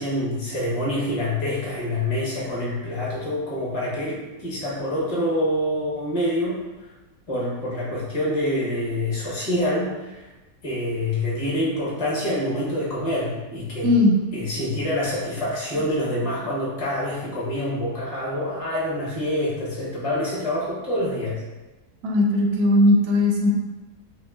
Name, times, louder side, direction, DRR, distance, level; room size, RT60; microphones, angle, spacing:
voice 1, 0.0-6.6 7.3-10.3 10.6-13.9 14.3-21.4, left 1 dB, 35° left, -6 dB, 0.7 m, -26 dB
voice 2, 13.8-14.2 22.0-23.5, left 1 dB, 90° right, 0 dB, 1.2 m, -18 dB
5.1 x 2.4 x 2.3 m, 1.2 s
omnidirectional pair, 1.6 m